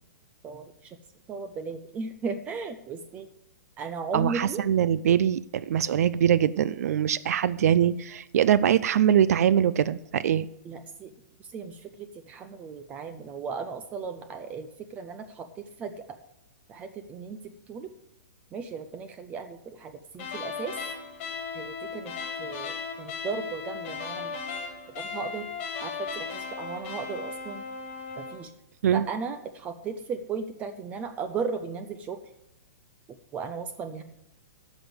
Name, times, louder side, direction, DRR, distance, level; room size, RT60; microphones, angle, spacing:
voice 1, 0.4-1.0 1.3-3.3 3.8-4.6 10.6-11.1 11.5-15.9 16.7-17.4 17.7-17.9 18.5-20.7 21.5-22.1 22.4-24.3 25.0-25.5 25.8-27.7 28.2-28.5 28.9-32.2 33.3-34.0, right 5 dB, 15° right, 9 dB, 0.5 m, -36 dB
voice 2, 4.1-10.5 28.8-29.1, right 9 dB, 65° right, 17 dB, 0.4 m, -23 dB
sound 1, 20.1-28.4, left 5 dB, 35° left, 2.5 m, -36 dB
10.0 x 6.2 x 7.9 m, 0.83 s
hypercardioid pair, 165°, 9 cm